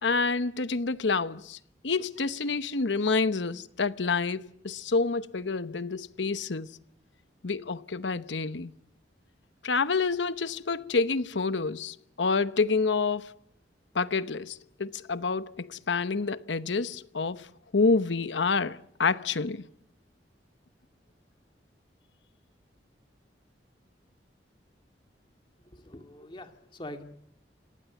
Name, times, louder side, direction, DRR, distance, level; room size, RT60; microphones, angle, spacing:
voice 1, 0.0-1.6 1.8-6.7 7.4-8.7 9.6-13.3 13.9-17.5 17.7-19.6, left 4 dB, 90° left, 0.9 m, -28 dB
voice 2, 25.8-27.0, left 1 dB, 25° left, 2.0 m, -43 dB
27.5 x 18.5 x 8.4 m
head